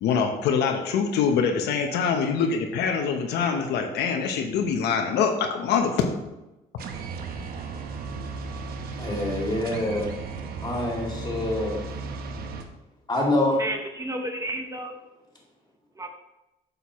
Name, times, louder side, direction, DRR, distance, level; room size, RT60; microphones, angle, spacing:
voice 1, 0.0-6.1, left 6 dB, 80° left, 4 dB, 1.0 m, -24 dB
sound 1, 6.8-12.6, right 4 dB, 65° right, 0.9 m, -35 dB
voice 2, 9.0-10.1 10.6-11.8 13.1-13.6, left 1 dB, 25° left, -2 dB, 2.5 m, -26 dB
voice 3, 13.5-15.0 16.0-16.1, right 1 dB, 20° right, 3 dB, 0.8 m, -32 dB
8.5 x 6.8 x 3.1 m, 0.95 s
cardioid pair, 110°, 17 cm